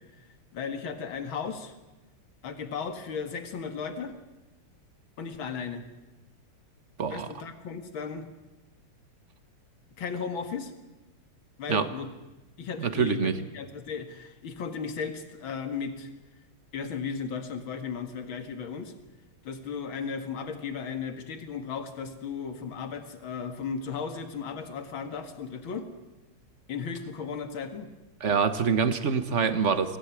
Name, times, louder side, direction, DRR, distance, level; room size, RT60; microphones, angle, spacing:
voice 1, 0.5-1.7 2.4-4.2 5.2-5.8 7.1-8.3 10.0-10.7 11.6-12.1 12.6-16.1 16.7-18.9 19.4-25.9 26.7-27.9, left 6 dB, 65° left, 7 dB, 2.6 m, -35 dB
voice 2, 12.8-13.4 28.2-30.0, right 6 dB, 40° right, 11 dB, 1.4 m, -25 dB
23.5 x 17.0 x 9.8 m, 1.1 s
omnidirectional pair, 2.4 m